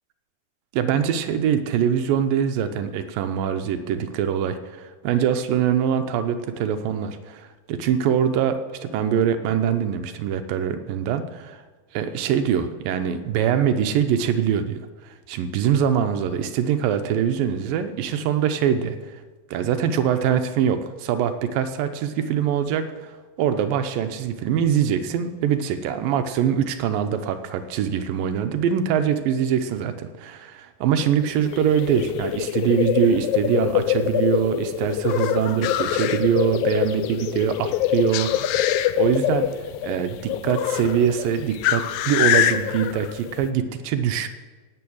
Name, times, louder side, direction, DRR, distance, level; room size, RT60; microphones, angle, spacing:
voice 1, 0.7-11.6 11.9-19.2 19.5-38.5 39.0-39.5 39.8-44.3, right 8 dB, 80° right, 9 dB, 2.5 m, -23 dB
sound 1, 31.0-43.5, left 11 dB, 85° left, 2.5 m, -24 dB
17.0 x 8.7 x 6.2 m, 1.4 s
omnidirectional pair, 4.1 m